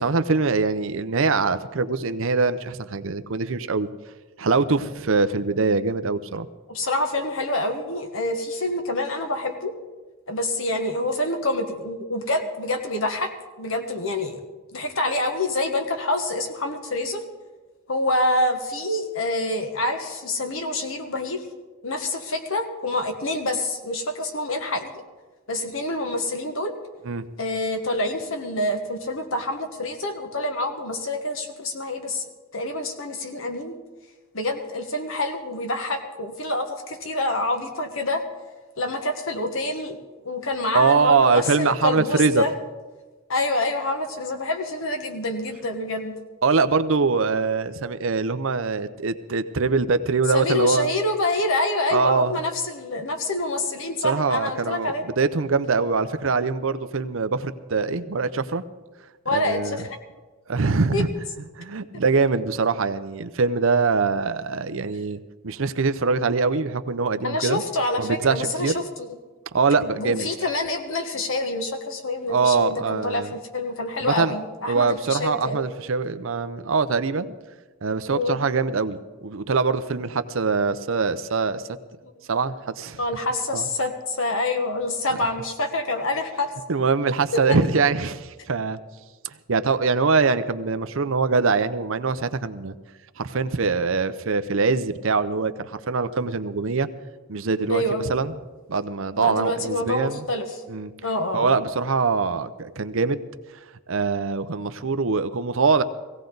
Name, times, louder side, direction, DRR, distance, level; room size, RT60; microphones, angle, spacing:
voice 1, 0.0-3.9 4.4-6.5 27.0-27.2 40.7-42.4 46.4-50.9 51.9-52.4 54.0-58.6 59.3-59.8 60.5-61.1 61.6-67.6 68.0-68.8 69.5-70.3 72.3-73.3 74.0-74.3 74.7-77.3 77.8-81.6 82.3-83.0 83.5-83.6 86.7-88.8 89.5-92.7 93.2-96.9 97.3-98.3 98.7-100.2 100.7-100.9 101.3-103.2 103.9-105.8, right 4 dB, 65° right, 11 dB, 0.7 m, -23 dB
voice 2, 6.7-9.7 10.3-13.3 13.6-14.4 14.7-17.2 17.9-21.4 21.8-25.0 25.5-26.8 27.4-33.7 34.3-38.2 38.8-40.0 40.2-42.5 43.3-46.1 50.3-55.0 59.3-59.8 60.9-61.0 67.2-69.1 70.0-75.7 78.1-78.4 83.0-86.5 97.7-98.1 99.2-100.6 101.0-101.6, left 2 dB, 65° left, 5 dB, 1.6 m, -27 dB
17.5 x 16.5 x 3.9 m, 1.3 s
head